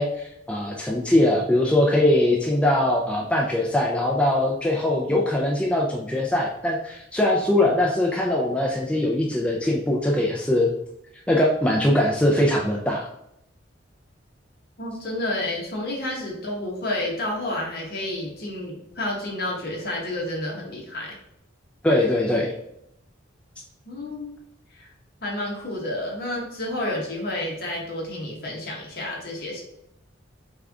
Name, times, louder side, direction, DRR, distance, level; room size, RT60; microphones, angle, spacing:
voice 1, 0.0-10.7 11.3-13.1 21.8-22.5, left 1 dB, 5° left, -2 dB, 0.4 m, -21 dB
voice 2, 14.8-21.2 23.9-24.3 24.7-24.9 25.2-29.6, left 1 dB, 50° left, -2 dB, 1.3 m, -30 dB
3.6 x 3.5 x 3.5 m, 0.78 s
head